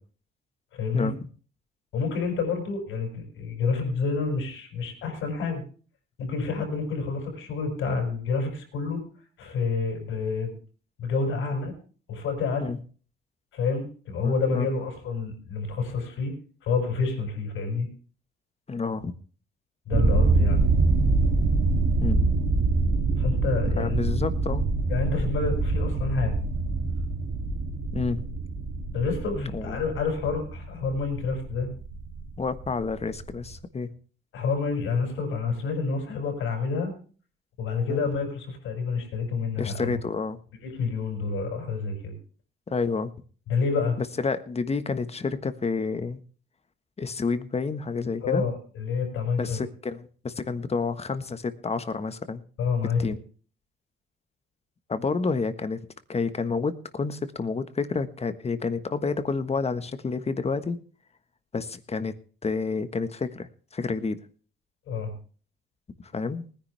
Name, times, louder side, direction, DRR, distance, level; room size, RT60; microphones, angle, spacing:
voice 1, 0.7-1.1 1.9-5.6 6.2-9.0 9.4-10.5 11.0-11.7 12.1-12.7 13.5-16.3 16.6-17.9 19.9-20.6 23.2-24.0 24.9-26.4 28.9-31.7 34.3-36.9 37.6-39.9 40.6-42.1 43.5-44.0 48.2-49.6 52.6-53.2 64.9-65.1, left 4 dB, 85° left, 4 dB, 6.3 m, -28 dB
voice 2, 14.2-14.7 18.7-19.1 22.0-22.3 23.8-24.6 27.9-28.2 29.3-29.8 32.4-33.9 37.9-38.0 39.6-40.4 42.7-43.1 44.0-46.2 47.0-48.4 49.4-52.4 53.0-53.2 54.9-55.8 56.1-60.8 61.5-62.2 62.4-64.2 66.1-66.5, left 4 dB, 30° left, 11 dB, 1.4 m, -29 dB
sound 1, 19.9-33.5, right 3 dB, 65° right, 2.6 m, -25 dB
19.5 x 10.5 x 3.4 m, 0.40 s
cardioid pair, 90°, 20 cm